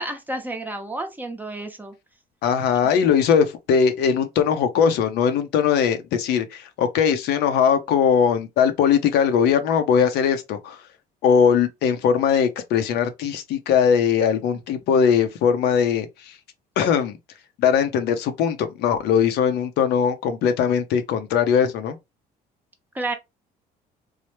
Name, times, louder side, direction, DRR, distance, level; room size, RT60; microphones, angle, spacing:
voice 1, 0.0-1.9 22.9-23.1, right 2 dB, 10° right, 0.7 m, -30 dB
voice 2, 2.4-10.8 11.2-16.3 16.8-17.2 17.6-22.0, left 7 dB, 80° left, 0.6 m, -20 dB
3.1 x 2.0 x 3.0 m
cardioid pair, 110°, 17 cm